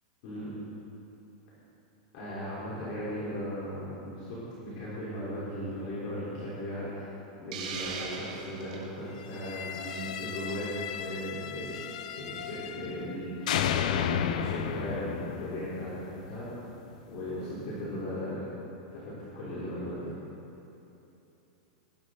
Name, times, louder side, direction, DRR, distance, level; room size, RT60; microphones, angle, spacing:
voice 1, 0.2-0.5 2.1-7.1 7.4-11.8 12.2-16.5 17.1-18.5 18.9-20.1, equal, 40° left, -9 dB, 3.9 m, -37 dB
Hiss, 7.5-8.9, right 5 dB, 55° right, 2.2 m, -38 dB
sound 1, 9.3-13.2 13.5-16.5, left 9 dB, 60° left, 0.7 m, -34 dB
20.5 x 12.5 x 3.9 m, 3.0 s
supercardioid pair, 175°, 4 cm